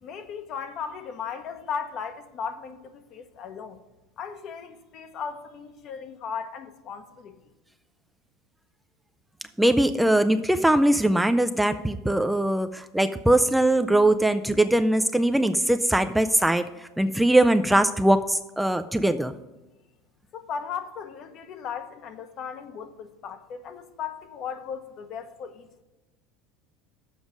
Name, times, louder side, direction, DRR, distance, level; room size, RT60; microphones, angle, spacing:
voice 1, 0.0-3.8 4.2-7.5 20.3-25.8, left 6 dB, 50° left, 1.0 m, -36 dB
voice 2, 9.6-19.3, right 1 dB, 5° right, 0.4 m, -21 dB
7.2 x 5.0 x 7.2 m
supercardioid pair, 105°, 0 cm